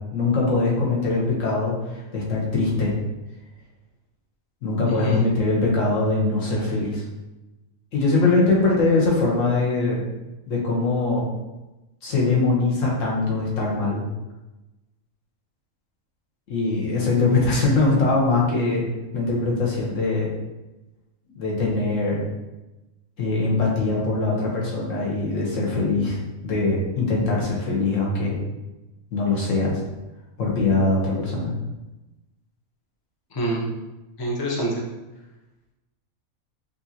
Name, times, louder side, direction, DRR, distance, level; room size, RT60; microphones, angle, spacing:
voice 1, 0.1-2.9 4.6-7.0 7.9-10.0 10.5-11.2 12.0-14.1 16.5-18.8 19.1-20.3 21.4-22.2 23.2-28.4 29.1-29.8 30.4-31.5, left 3 dB, 65° left, -3 dB, 1.3 m, -22 dB
voice 2, 4.9-5.2 33.3-33.6 34.2-34.8, right 1 dB, 25° left, -3 dB, 0.5 m, -26 dB
5.2 x 2.6 x 2.8 m, 1.0 s
omnidirectional pair, 1.5 m